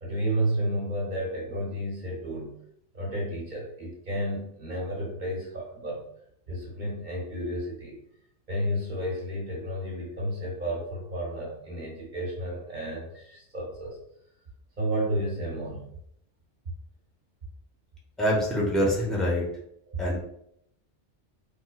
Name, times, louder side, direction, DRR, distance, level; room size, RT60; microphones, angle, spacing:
voice 1, 0.0-2.6 2.9-6.0 6.5-8.0 8.5-14.0 14.8-15.9 19.9-20.0, right 1 dB, 45° right, -2 dB, 0.8 m, -32 dB
voice 2, 18.2-19.5 20.0-20.2, equal, ahead, -4 dB, 0.5 m, -25 dB
4.3 x 2.2 x 2.2 m, 0.73 s
omnidirectional pair, 1.2 m